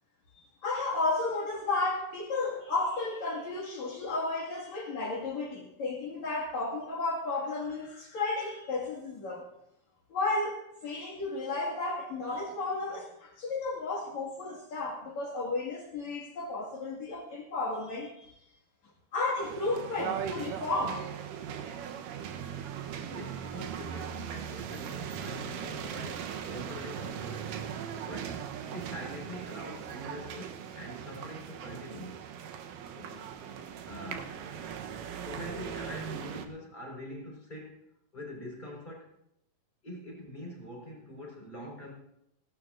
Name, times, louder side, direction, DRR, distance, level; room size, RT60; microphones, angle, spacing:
voice 1, 0.3-9.5 10.1-18.4 19.1-21.0, left 3 dB, 55° left, -4 dB, 3.1 m, -33 dB
sound 1, 19.4-36.5, right 8 dB, 75° right, 2.5 m, -39 dB
voice 2, 23.0-27.5 28.0-28.4 28.7-32.2 32.9-33.2 33.8-34.3 35.2-37.8 38.1-39.1 39.8-41.9, left 1 dB, 10° left, -3 dB, 4.6 m, -44 dB
18.0 x 17.5 x 2.5 m, 0.79 s
omnidirectional pair, 4.0 m